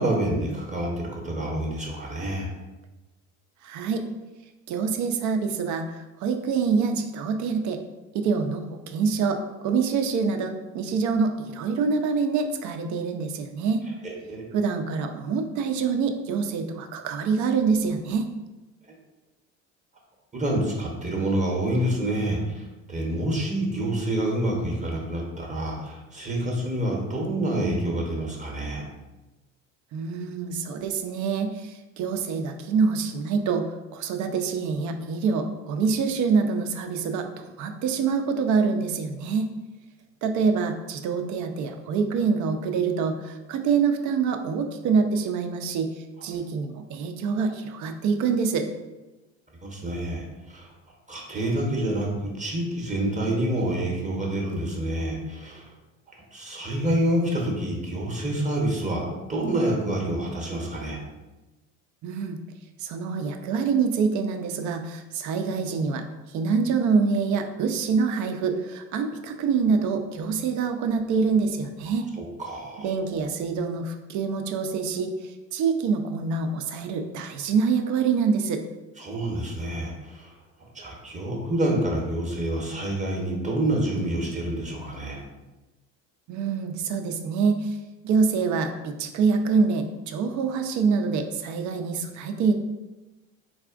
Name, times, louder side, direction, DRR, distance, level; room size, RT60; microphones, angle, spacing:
voice 1, 0.0-2.5 14.0-14.4 20.3-28.8 46.3-46.4 49.6-50.7 51.1-52.1 52.4-55.7 56.3-61.0 72.2-72.9 79.0-80.3 80.7-85.2, right 1 dB, 20° right, -1 dB, 0.8 m, -27 dB
voice 2, 3.6-4.1 4.7-5.9 6.2-7.8 8.1-13.9 14.5-18.3 29.9-39.5 40.2-45.9 46.2-48.7 62.0-62.4 62.8-72.1 72.8-78.6 86.3-87.8 88.0-92.5, right 5 dB, 50° right, 6 dB, 0.5 m, -25 dB
4.1 x 2.4 x 2.4 m, 1.1 s
hypercardioid pair, 65°, 39 cm